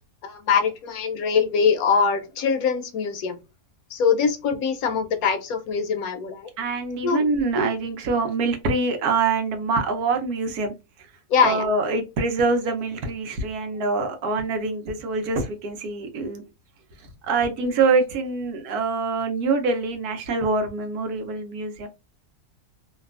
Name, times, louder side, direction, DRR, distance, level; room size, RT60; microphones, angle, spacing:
voice 1, 0.2-3.4 3.9-6.5 7.0-7.2 11.3-11.6, left 6 dB, 75° left, 1.1 m, -23 dB
voice 2, 6.6-10.7 11.4-16.4 17.0-21.9, right 3 dB, 85° right, 1.3 m, -25 dB
3.3 x 2.3 x 2.3 m
omnidirectional pair, 1.6 m